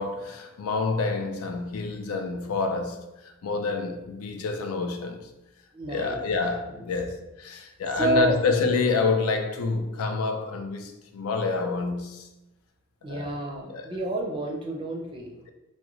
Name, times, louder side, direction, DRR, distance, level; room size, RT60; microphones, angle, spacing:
voice 1, 0.0-3.0 3.4-5.2 5.9-12.3 13.1-13.3 13.7-13.9, left 4 dB, 90° left, 0.4 m, -28 dB
voice 2, 5.7-6.2 6.7-6.9 7.5-7.6 7.9-8.4 13.0-15.3, right 1 dB, 25° right, 0.4 m, -29 dB
3.5 x 2.1 x 3.0 m
head